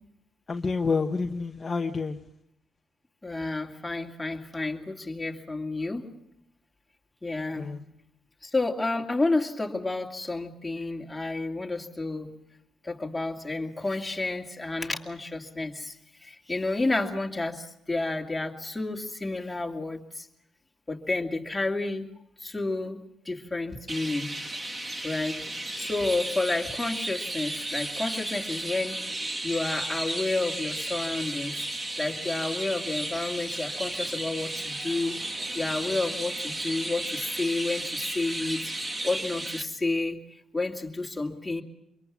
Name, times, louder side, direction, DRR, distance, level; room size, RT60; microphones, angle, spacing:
voice 1, 0.5-2.2 7.5-7.9, left 4 dB, 30° left, 1.0 m, -28 dB
voice 2, 3.2-6.1 7.2-7.7 8.4-12.3 12.8-15.9 16.2-20.3 20.9-22.1 22.4-24.3 25.0-25.4 25.8-31.6 32.0-35.2 35.5-38.7 39.0-40.2 40.5-41.6, left 2 dB, 15° left, 2.5 m, -30 dB
Chirp tweet, 23.9-39.6, right 1 dB, 25° right, 1.8 m, -34 dB
25.5 x 22.5 x 6.0 m
cardioid pair, 90°, 0 cm